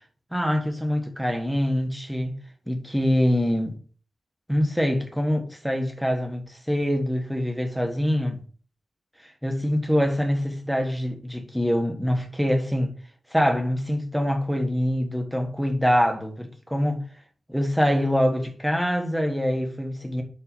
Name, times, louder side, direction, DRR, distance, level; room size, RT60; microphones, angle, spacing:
voice 1, 0.3-2.3 2.7-3.8 4.5-8.4 9.4-12.9 13.3-17.0 17.5-20.2, equal, ahead, 1.4 m, -24 dB
5.6 x 5.5 x 5.5 m
wide cardioid pair, 140°, 0 cm